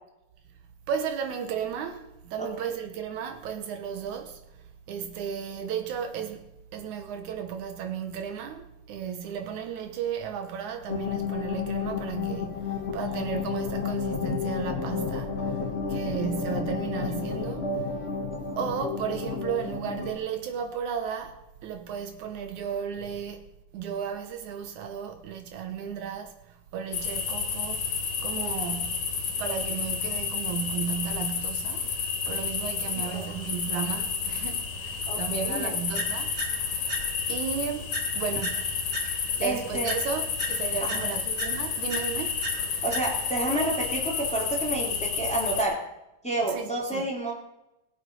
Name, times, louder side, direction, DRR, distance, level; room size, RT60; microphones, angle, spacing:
voice 1, 0.9-4.4 4.9-17.9 18.6-23.5 23.7-27.9 28.2-29.0 29.3-36.7 37.3-38.6 39.2-42.5 46.5-47.1, right 8 dB, 75° right, 2.3 m, -34 dB
sound 1, 10.9-20.1, left 5 dB, 35° left, 1.1 m, -31 dB
sound 2, 26.9-45.6, left 6 dB, 90° left, 3.7 m, -30 dB
voice 2, 35.1-35.7 39.4-39.9 40.8-41.0 42.8-45.8 46.2-47.3, right 1 dB, ahead, 2.6 m, -29 dB
sound 3, 35.9-37.4 37.9-39.5 39.9-43.5, right 1 dB, 30° right, 2.7 m, -38 dB
21.0 x 7.7 x 5.3 m
omnidirectional pair, 3.6 m